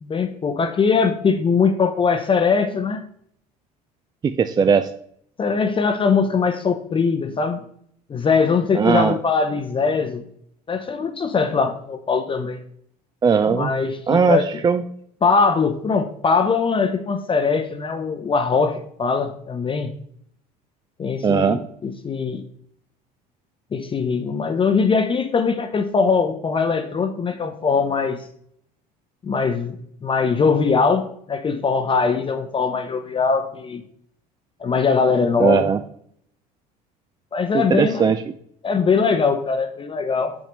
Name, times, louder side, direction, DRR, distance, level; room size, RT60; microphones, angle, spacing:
voice 1, 0.0-3.0 5.4-7.6 8.1-10.2 10.7-12.6 13.5-14.5 15.2-19.9 21.0-22.4 23.7-28.3 29.2-29.8 30.0-33.8 34.6-35.7 37.3-38.1 38.6-40.4, left 5 dB, 25° left, 7 dB, 0.6 m, -21 dB
voice 2, 4.2-4.9 8.7-9.2 13.2-13.7 14.1-14.8 21.2-21.6 35.4-35.8 37.5-38.2, right 6 dB, 20° right, 10 dB, 0.3 m, -18 dB
6.4 x 6.0 x 3.0 m, 0.67 s
hypercardioid pair, 75°, 20 cm